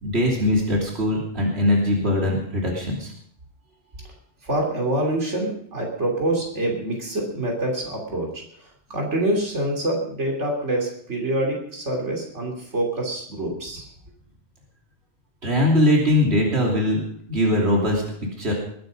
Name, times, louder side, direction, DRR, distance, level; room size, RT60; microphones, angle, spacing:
voice 1, 0.0-3.1 15.4-17.0 17.3-18.0 18.4-18.5, left 1 dB, 65° right, -1 dB, 3.3 m, -21 dB
voice 2, 4.4-8.4 8.9-13.9, right 1 dB, 85° right, 0 dB, 3.6 m, -26 dB
21.0 x 9.4 x 5.3 m, 0.64 s
omnidirectional pair, 1.2 m